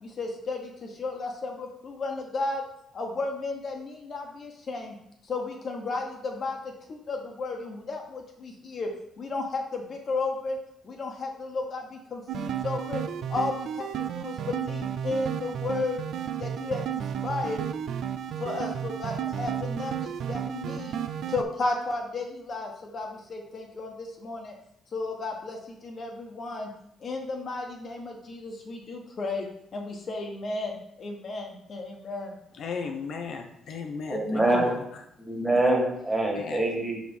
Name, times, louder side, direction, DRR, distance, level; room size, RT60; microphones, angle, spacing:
voice 1, 0.0-2.6 2.9-4.9 5.2-8.9 9.2-10.6 10.8-13.0 13.3-16.0 16.3-17.6 18.4-21.0 21.3-24.5 24.9-26.7 27.0-29.5 29.7-32.3, left 3 dB, 50° left, 1 dB, 1.2 m, -33 dB
sound 1, 12.3-21.4, right 9 dB, 70° right, 0.3 m, -33 dB
voice 2, 32.6-34.7 36.4-36.6, left 5 dB, 65° left, 4 dB, 0.6 m, -35 dB
voice 3, 34.1-34.8 35.2-37.0, right 1 dB, 15° right, 0 dB, 1.8 m, -25 dB
4.7 x 3.7 x 5.4 m, 0.76 s
cardioid pair, 90°, 0 cm